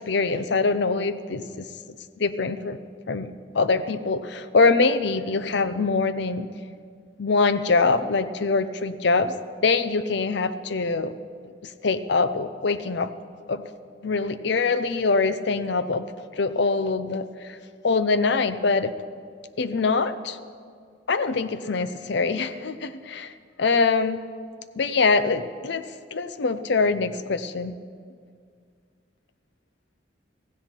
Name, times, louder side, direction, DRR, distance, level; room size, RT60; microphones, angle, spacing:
voice 1, 0.1-1.7 2.2-2.8 3.1-6.5 7.2-9.3 9.6-11.1 11.6-13.1 13.5-13.6 14.0-16.1 16.3-17.6 17.8-18.9 19.6-20.4 21.1-23.3 23.6-24.2 24.8-25.8 26.1-27.7, left 4 dB, 65° left, 13 dB, 0.6 m, -23 dB
16.0 x 15.5 x 4.5 m, 2.1 s
head